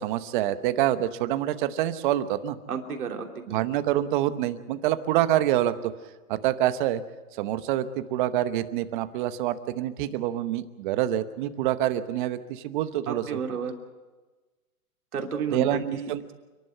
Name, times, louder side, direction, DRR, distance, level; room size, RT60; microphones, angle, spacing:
voice 1, 0.0-2.6 3.5-5.9 6.3-7.0 7.3-13.4 15.5-16.3, right 12 dB, 35° right, 12 dB, 1.0 m, -26 dB
voice 2, 2.7-3.3 13.1-13.7 15.1-16.3, right 6 dB, 80° right, 3 dB, 3.2 m, -31 dB
29.5 x 11.5 x 7.9 m, 1.2 s
hypercardioid pair, 145°, 44 cm